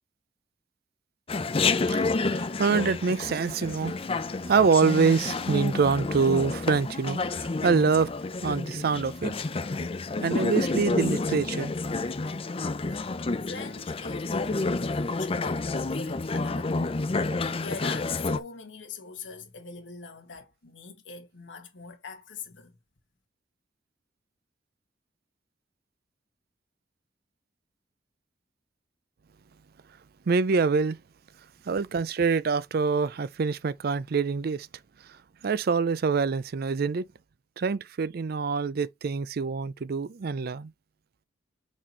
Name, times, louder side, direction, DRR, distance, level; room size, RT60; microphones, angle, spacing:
Chatter, 1.3-18.4, left 3 dB, 30° left, 0.5 m, -29 dB
voice 1, 1.9-4.1 4.5-8.1 8.4-9.3 10.2-11.7 30.3-31.0 31.7-34.7 35.4-37.1 37.6-40.7, right 5 dB, 50° right, 0.4 m, -25 dB
voice 2, 13.4-16.9 17.6-22.8, left 4 dB, 75° left, 1.7 m, -42 dB
6.2 x 4.3 x 4.5 m
head